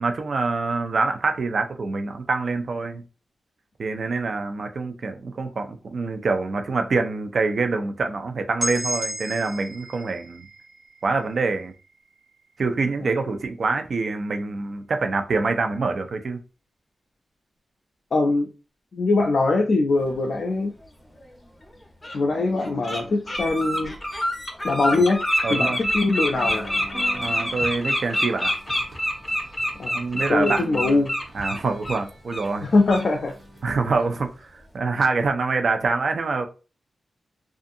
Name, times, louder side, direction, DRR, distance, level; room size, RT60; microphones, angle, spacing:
voice 1, 0.0-3.0 3.8-10.5 11.0-11.7 12.6-16.4 25.4-25.8 27.2-28.5 29.9-31.1 31.3-32.7 33.6-36.5, right 3 dB, 55° right, 0.4 m, -25 dB
sound 1, 8.6-12.4, right 1 dB, 40° right, 1.3 m, -34 dB
voice 2, 18.1-18.5 18.9-20.8 22.1-24.0 24.6-25.2 25.5-26.7 29.8-31.1 32.6-33.3, left 3 dB, 55° left, 0.4 m, -22 dB
Bird, 21.2-21.3 22.0-22.2 22.6-23.0 23.3-32.0 32.3-32.5 32.9-33.1, equal, 20° left, 0.7 m, -26 dB
sound 2, 26.3-33.6, right 1 dB, 70° right, 1.2 m, -43 dB
2.6 x 2.4 x 2.5 m
wide cardioid pair, 120°, 0 cm